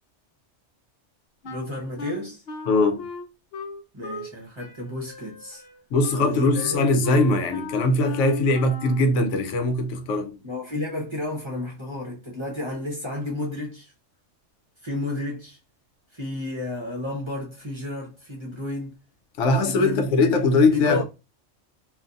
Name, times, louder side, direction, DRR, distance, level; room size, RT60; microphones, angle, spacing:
Wind instrument woodwind instrument, 1.4-4.3 4.6-9.1, left 3 dB, 60° left, 0.8 m, -37 dB
voice 1, 1.4-2.4 3.9-5.7 6.2-6.9 10.4-13.9 14.8-15.6 16.1-19.0 19.6-20.1 20.7-21.0, left 2 dB, 30° right, 0.7 m, -32 dB
voice 2, 2.7-3.1 5.9-10.4 19.4-21.0, left 2 dB, 85° left, 0.9 m, -21 dB
2.5 x 2.5 x 2.4 m
omnidirectional pair, 1.2 m